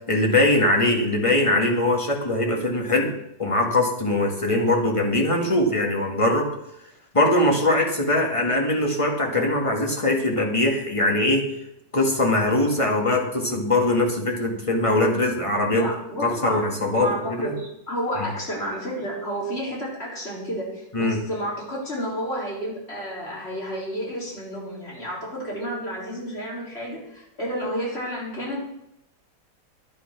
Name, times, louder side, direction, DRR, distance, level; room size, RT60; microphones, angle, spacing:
voice 1, 0.1-3.1 3.4-6.5 7.1-11.5 11.9-15.9 16.2-17.5 18.2-18.3 20.9-21.2, left 1 dB, 15° left, 1 dB, 1.9 m, -21 dB
voice 2, 15.7-16.6 16.9-28.8, equal, 35° left, -4 dB, 4.2 m, -31 dB
11.0 x 9.4 x 6.0 m, 0.82 s
omnidirectional pair, 2.0 m